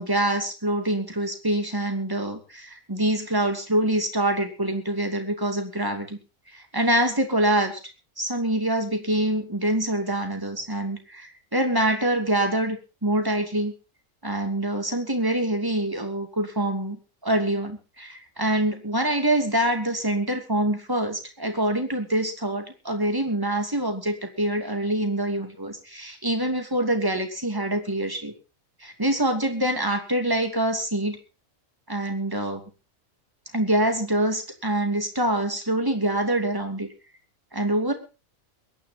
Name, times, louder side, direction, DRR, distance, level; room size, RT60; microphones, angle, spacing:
voice 1, 0.0-6.2 6.5-7.8 8.2-13.7 14.2-17.0 17.2-28.3 28.8-31.2 31.9-32.6 33.5-36.9 37.5-37.9, right 1 dB, 15° right, 5 dB, 2.7 m, -25 dB
22.5 x 10.5 x 4.1 m, 0.32 s
omnidirectional pair, 1.4 m